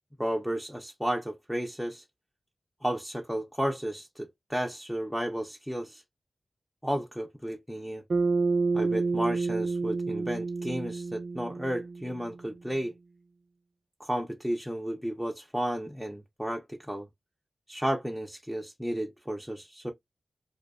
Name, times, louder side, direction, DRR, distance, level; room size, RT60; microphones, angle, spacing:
voice 1, 0.2-2.0 2.8-6.0 6.8-8.0 8.7-12.9 14.0-17.1 17.7-19.9, equal, ahead, 0.4 m, -33 dB
Bass guitar, 8.1-12.5, right 3 dB, 75° right, 0.4 m, -29 dB
2.6 x 2.1 x 2.3 m
wide cardioid pair, 80°, 0 cm